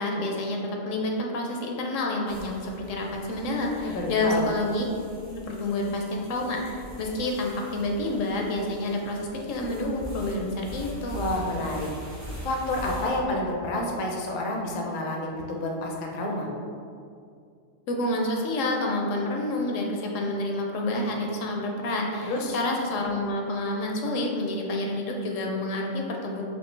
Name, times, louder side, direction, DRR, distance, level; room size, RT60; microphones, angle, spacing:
voice 1, 0.0-4.9 5.3-11.2 17.9-26.4, left 1 dB, 75° left, 0 dB, 0.9 m, -29 dB
sound 1, 2.3-13.1, equal, 25° right, 0.4 m, -42 dB
voice 2, 3.8-4.5 11.1-11.9 12.4-16.5 22.2-22.6, left 1 dB, 55° left, -1 dB, 0.6 m, -29 dB
4.4 x 2.5 x 3.2 m, 2.4 s
omnidirectional pair, 1.4 m